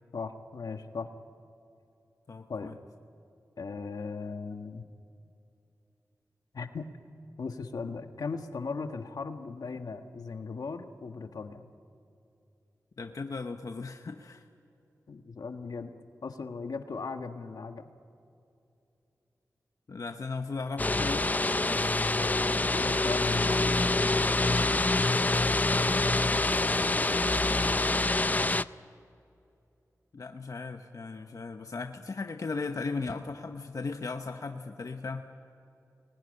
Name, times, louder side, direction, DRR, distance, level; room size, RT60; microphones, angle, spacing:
voice 1, 0.1-1.1 2.5-2.7 3.6-4.9 6.5-6.9 7.4-11.7 15.1-15.9 16.2-17.9 22.2-24.2, left 4 dB, 80° left, 6 dB, 1.4 m, -38 dB
voice 2, 2.3-2.8 13.0-14.5 19.9-21.4 30.1-35.2, left 4 dB, 60° left, 5 dB, 1.0 m, -37 dB
sound 1, 20.8-28.6, left 2 dB, 25° left, 0.5 m, -26 dB
25.0 x 20.0 x 9.9 m, 2.7 s
wide cardioid pair, 65°, 6 cm